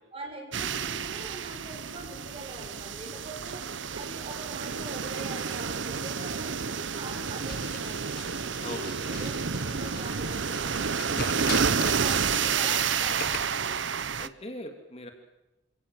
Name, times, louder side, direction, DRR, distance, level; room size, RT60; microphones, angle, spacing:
voice 1, 0.1-3.6 3.9-8.2 8.6-13.8, right 2 dB, 30° right, 1 dB, 7.7 m, -43 dB
sound 1, 0.5-14.3, right 6 dB, 70° right, 0.9 m, -30 dB
sound 2, 7.5-13.5, left 6 dB, 55° left, 1.6 m, -41 dB
voice 2, 14.2-15.1, left 1 dB, 35° left, 5 dB, 3.0 m, -39 dB
29.0 x 17.5 x 7.7 m, 0.99 s
head